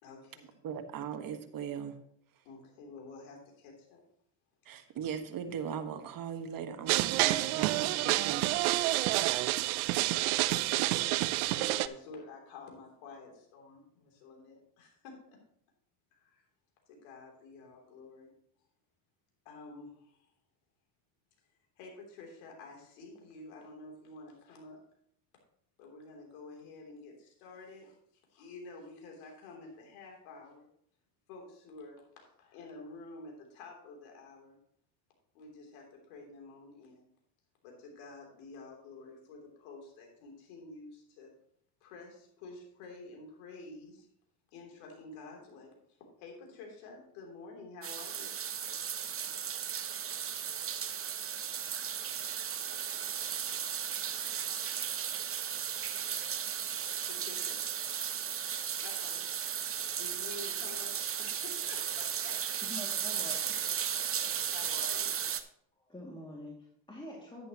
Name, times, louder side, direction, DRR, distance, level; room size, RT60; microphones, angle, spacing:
voice 1, 0.0-0.5 2.4-4.0 4.7-4.8 9.0-9.6 9.9-15.4 16.1-16.5 16.9-18.3 19.5-20.3 21.8-24.8 25.8-28.0 28.3-30.7 31.3-34.6 35.3-37.1 37.6-41.3 41.8-44.1 44.5-48.3 57.1-57.6 58.8-59.2 60.0-62.4 64.5-65.2, left 3 dB, 80° left, 1 dB, 3.4 m, -50 dB
voice 2, 0.6-1.9 4.6-8.4, right 7 dB, 50° right, 7 dB, 1.5 m, -39 dB
sound 1, 6.9-11.9, right 17 dB, 85° right, 0.6 m, -28 dB
sound 2, 47.8-65.4, right 8 dB, 30° right, 0.9 m, -35 dB
voice 3, 62.6-63.8 65.8-67.5, left 1 dB, 10° left, -3 dB, 2.3 m, -46 dB
10.5 x 10.0 x 3.0 m, 0.68 s
supercardioid pair, 80°, 43 cm